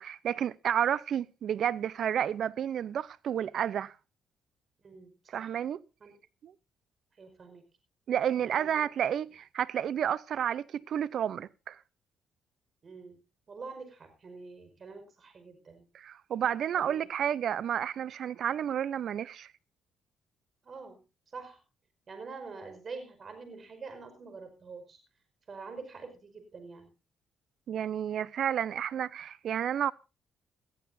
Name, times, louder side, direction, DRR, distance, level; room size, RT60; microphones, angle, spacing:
voice 1, 0.0-3.9 5.3-5.8 6.4-6.5 8.1-11.8 15.9-19.5 27.7-29.9, right 9 dB, 65° right, 0.7 m, -31 dB
voice 2, 4.8-5.5 6.0-6.2 7.2-7.6 8.4-8.9 12.8-15.9 16.8-17.1 18.5-18.6 20.6-21.0 21.3-21.6 22.1-25.0 25.5-26.9, right 4 dB, 45° right, 5.2 m, -46 dB
19.0 x 14.0 x 2.7 m
cardioid pair, 90°, 0 cm